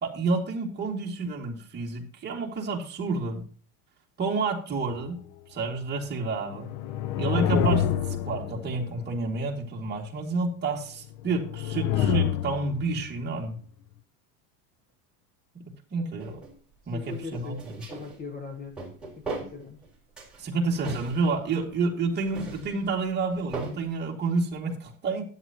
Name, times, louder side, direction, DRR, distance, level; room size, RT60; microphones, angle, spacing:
voice 1, 0.0-3.4 4.2-5.2 5.5-6.7 7.2-13.6 15.9-16.4 16.9-17.5 20.4-25.2, right 3 dB, 20° right, 0 dB, 2.4 m, -29 dB
sound 1, 6.1-9.1 11.2-13.0, left 8 dB, 65° left, 0.9 m, -27 dB
sound 2, 16.2-16.5 17.0-18.2 18.6-19.9 20.2-21.8 22.2-23.8, right 3 dB, ahead, 4.1 m, -39 dB
voice 2, 16.9-18.8 19.2-19.8, left 4 dB, 20° left, 5 dB, 1.0 m, -40 dB
13.0 x 9.2 x 2.9 m, 0.42 s
cardioid pair, 160°, 45 cm